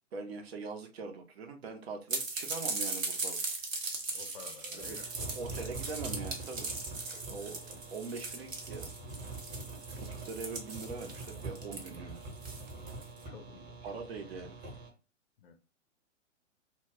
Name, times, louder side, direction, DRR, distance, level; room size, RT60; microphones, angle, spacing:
voice 1, 0.1-3.4 4.7-6.7 7.1-8.9 10.0-12.2 13.8-14.6, right 4 dB, 55° right, 0.7 m, -42 dB
sound 1, 2.1-13.2, right 3 dB, 85° right, 0.8 m, -39 dB
voice 2, 4.1-5.1 7.0-7.3 13.3-14.0 15.4-15.5, left 5 dB, 50° left, 0.6 m, -52 dB
sound 2, 4.8-14.9, right 3 dB, 25° right, 1.0 m, -45 dB
2.3 x 2.1 x 3.5 m
figure-of-eight pair, 115°, 38 cm